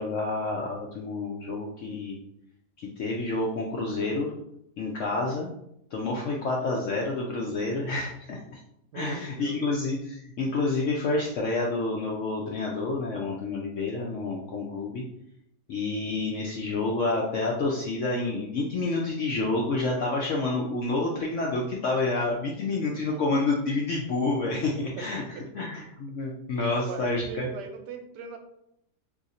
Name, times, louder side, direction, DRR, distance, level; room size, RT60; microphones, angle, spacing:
voice 1, 0.0-2.2 2.8-4.3 4.8-5.5 5.9-8.6 8.9-15.0 15.7-25.2 25.5-27.5, left 3 dB, 70° left, -2 dB, 0.7 m, -29 dB
voice 2, 8.9-9.7 22.9-23.2 25.0-25.1 25.3-25.7 26.7-28.4, right 6 dB, 85° right, 6 dB, 1.2 m, -40 dB
2.8 x 2.5 x 4.0 m, 0.77 s
omnidirectional pair, 1.8 m